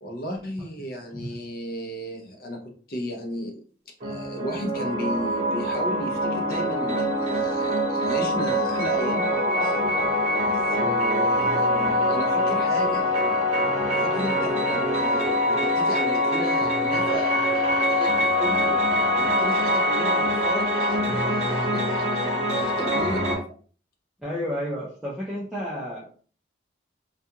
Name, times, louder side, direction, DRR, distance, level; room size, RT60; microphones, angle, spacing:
voice 1, 0.0-2.6 2.9-3.6 4.0-9.9 10.4-13.1 14.0-18.8 19.1-23.4, equal, 50° left, 1 dB, 0.7 m, -34 dB
sound 1, 4.0-23.4, left 1 dB, 35° right, 0.8 m, -24 dB
voice 2, 24.2-26.2, equal, 5° right, -7 dB, 0.5 m, -31 dB
2.4 x 2.3 x 2.8 m, 0.41 s
head